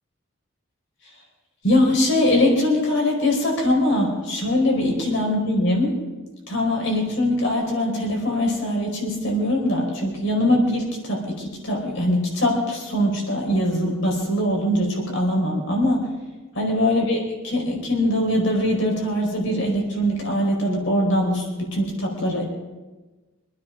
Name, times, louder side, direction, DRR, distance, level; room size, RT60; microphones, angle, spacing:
voice 1, 1.6-5.9 6.5-16.0 16.5-17.2 17.4-22.4, left 1 dB, 70° left, 0 dB, 4.7 m, -22 dB
25.5 x 9.7 x 5.2 m, 1.2 s
head